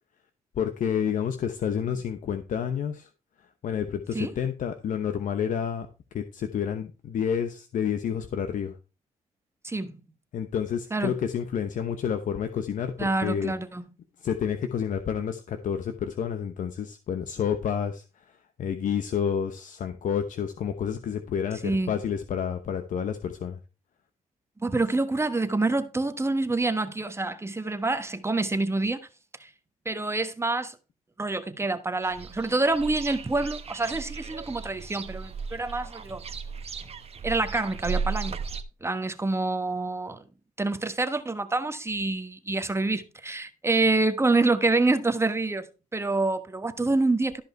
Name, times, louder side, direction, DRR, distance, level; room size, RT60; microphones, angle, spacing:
voice 1, 0.6-3.1 3.6-5.9 6.1-8.8 10.3-13.5 14.2-23.6, left 8 dB, 70° left, 1.0 m, -29 dB
voice 2, 9.6-10.0 10.9-11.1 13.0-13.8 21.6-21.9 24.6-29.1 29.4-29.5 29.8-30.8 31.2-36.2 37.2-38.4 38.8-40.2 40.6-45.7 45.9-47.4, right 2 dB, 20° right, 1.3 m, -27 dB
sound 1, 32.0-38.6, right 5 dB, 45° right, 1.2 m, -36 dB
13.0 x 5.3 x 4.5 m
cardioid pair, 80°, 14 cm